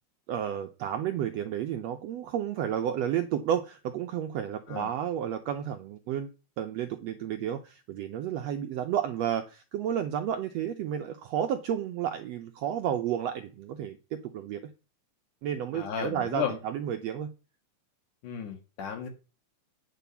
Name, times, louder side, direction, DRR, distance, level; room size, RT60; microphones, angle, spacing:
voice 1, 0.3-6.3 6.6-14.7 15.4-17.3, right 9 dB, 80° right, 6 dB, 1.5 m, -31 dB
voice 2, 15.7-16.5 18.2-19.1, left 7 dB, 75° left, 5 dB, 3.2 m, -34 dB
9.2 x 5.1 x 6.9 m, 0.32 s
omnidirectional pair, 3.7 m